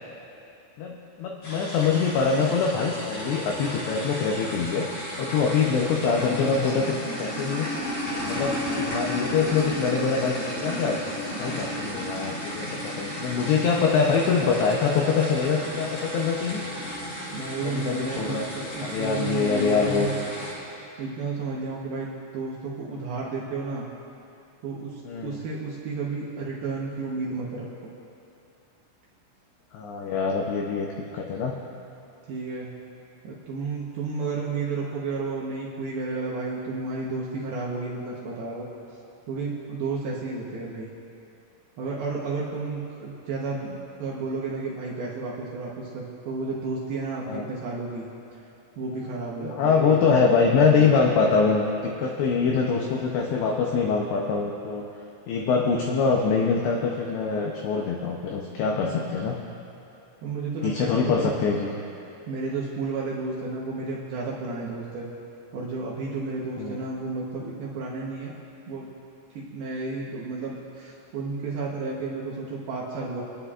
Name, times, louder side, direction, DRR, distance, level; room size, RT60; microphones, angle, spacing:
voice 1, 0.8-4.9 5.2-7.7 8.3-11.0 11.4-16.6 17.6-18.5 18.8-20.1 25.1-25.4 29.7-31.6 47.3-47.5 49.4-54.9 55.3-59.4 60.6-61.7 66.6-66.8, left 5 dB, 85° left, 0 dB, 2.4 m, -24 dB
sound 1, 1.4-20.5, equal, 40° left, 3.7 m, -33 dB
voice 2, 17.3-20.2 21.0-23.9 24.6-27.7 32.3-32.7 33.2-38.7 39.3-40.9 41.8-48.1 48.8-50.9 58.8-59.1 60.2-61.3 62.3-65.1 65.5-68.4 68.7-68.9 69.3-73.2, right 3 dB, 75° right, -5 dB, 2.3 m, -32 dB
28.5 x 9.9 x 2.4 m, 2.7 s
omnidirectional pair, 5.9 m